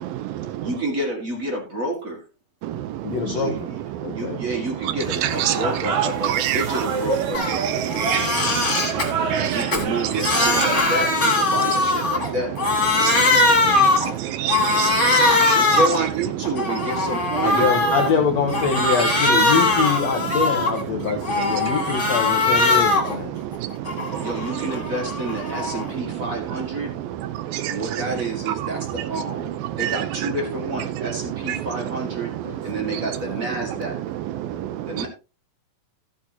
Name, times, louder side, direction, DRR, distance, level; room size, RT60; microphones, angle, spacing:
voice 1, 0.6-2.2 3.3-3.8 4.1-7.4 9.1-12.5 15.5-18.0 24.2-26.9 27.6-32.3 32.6-34.0 34.9-35.1, right 2 dB, 35° right, 1.4 m, -29 dB
voice 2, 3.0-3.5 4.0-4.4 17.4-23.3 32.4-33.8, left 6 dB, 70° left, 1.7 m, -25 dB
sound 1, 5.0-10.8, right 6 dB, 60° right, 2.4 m, -28 dB
voice 3, 5.2-5.6 6.2-6.6 7.5-8.4 9.3-9.5 14.4-15.5 29.8-30.1 31.5-31.6, right 12 dB, 80° right, 2.5 m, -25 dB
Crying sobbing, 7.3-7.6 7.9-9.1 9.5-12.3 12.6-14.1 14.5-16.0 16.4-18.1 18.5-20.8 21.2-23.2 23.5-25.9, left 3 dB, 20° left, 2.4 m, -21 dB
14.5 x 8.6 x 2.8 m
omnidirectional pair, 4.3 m